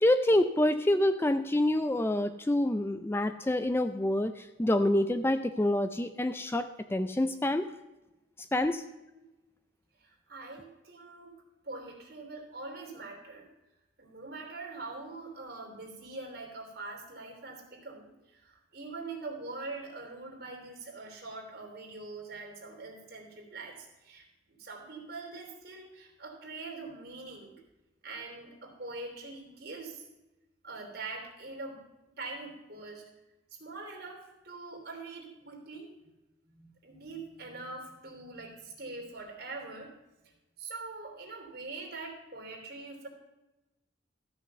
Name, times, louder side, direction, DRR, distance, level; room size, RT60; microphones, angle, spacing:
voice 1, 0.0-7.7 8.5-8.8, left 1 dB, 10° left, 10 dB, 0.4 m, -27 dB
voice 2, 8.6-9.3 10.0-11.4 11.6-13.5 14.0-27.6 28.0-30.0 30.6-31.8 32.2-33.0 33.5-35.9 36.5-39.9 40.6-43.1, right 3 dB, 55° right, 1 dB, 3.1 m, -43 dB
14.0 x 6.3 x 6.7 m, 1.0 s
head